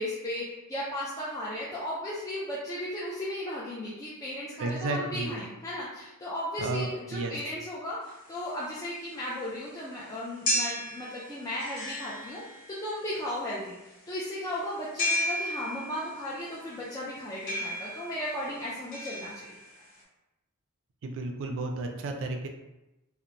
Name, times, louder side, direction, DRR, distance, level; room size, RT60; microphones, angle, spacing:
voice 1, 0.0-19.6, left 1 dB, 15° left, -8 dB, 0.3 m, -36 dB
voice 2, 4.6-5.4 6.6-7.3 21.0-22.5, right 2 dB, 60° right, 3 dB, 0.3 m, -32 dB
sound 1, 8.1-20.0, left 1 dB, 40° left, 0.7 m, -35 dB
2.8 x 2.0 x 2.5 m, 0.99 s
head